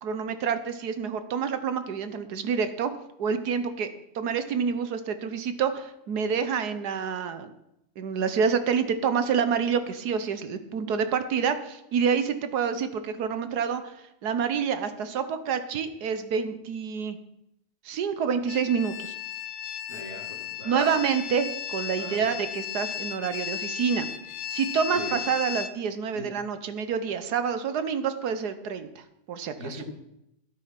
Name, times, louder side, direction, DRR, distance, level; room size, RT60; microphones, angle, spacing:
voice 1, 0.0-2.9 3.2-3.9 4.1-7.5 8.0-13.9 14.2-17.2 17.8-19.1 20.6-24.1 24.5-29.8, right 6 dB, 80° right, 10 dB, 1.5 m, -28 dB
sound 1, 18.5-25.7, left 9 dB, 70° left, 1.2 m, -35 dB
voice 2, 19.9-21.0 21.9-22.3 24.9-25.2 26.1-26.4 29.6-29.8, equal, 50° right, -1 dB, 3.1 m, -40 dB
13.0 x 8.3 x 5.9 m, 0.82 s
omnidirectional pair, 1.7 m